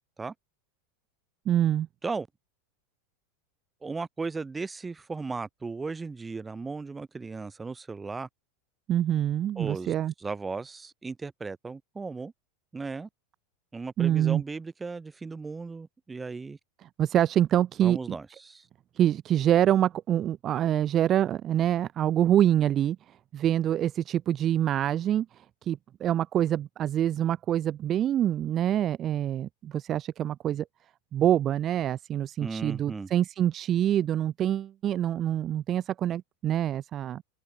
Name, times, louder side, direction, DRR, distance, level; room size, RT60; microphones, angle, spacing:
voice 1, 1.5-1.9 8.9-10.1 14.0-14.4 17.0-18.0 18.9-30.6 31.1-37.2, right 11 dB, 35° right, 1.0 m, -26 dB
voice 2, 3.8-8.3 9.6-12.3 12.7-13.1 13.7-16.6 17.8-18.7 32.4-33.1, right 4 dB, 15° right, 4.9 m, -36 dB
supercardioid pair, 120°, 0 cm